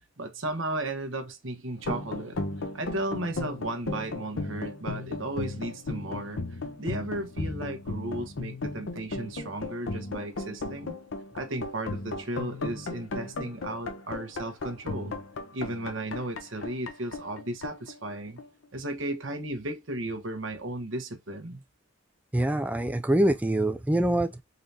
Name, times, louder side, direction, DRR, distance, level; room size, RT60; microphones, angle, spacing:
voice 1, 0.2-2.4 2.7-6.4 6.8-10.9 11.3-15.1 15.5-18.4 18.7-21.6, right 1 dB, 85° right, 1.0 m, -35 dB
sound 1, 1.8-18.6, left 2 dB, 85° left, 0.8 m, -35 dB
voice 2, 22.3-24.4, right 1 dB, 10° right, 0.3 m, -24 dB
3.9 x 3.3 x 2.7 m
head